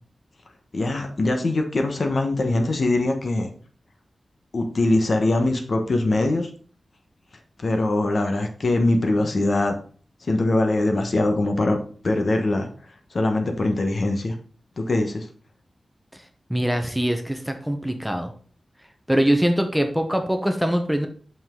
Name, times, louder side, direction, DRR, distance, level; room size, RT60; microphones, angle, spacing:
voice 1, 0.7-3.5 4.5-6.5 7.6-9.7 10.2-11.8 12.0-12.7 13.1-14.3 14.8-15.3, left 2 dB, 55° left, 4 dB, 1.1 m, -22 dB
voice 2, 16.5-18.3 19.1-21.1, right 1 dB, 5° right, 5 dB, 0.8 m, -23 dB
5.6 x 5.4 x 3.7 m, 0.43 s
wide cardioid pair, 110°, 0 cm